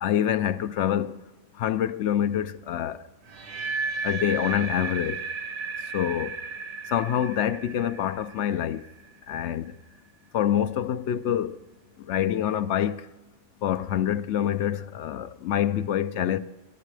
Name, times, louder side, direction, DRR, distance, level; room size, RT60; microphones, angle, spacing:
voice 1, 0.0-1.2 1.6-3.0 4.0-5.2 5.9-6.4 6.9-8.8 9.3-9.7 10.3-11.6 12.1-13.1 13.6-16.4, left 10 dB, 75° left, 0.9 m, -26 dB
sound 1, 3.3-9.3, right 4 dB, 60° right, 1.3 m, -34 dB
23.0 x 11.0 x 3.3 m
omnidirectional pair, 1.2 m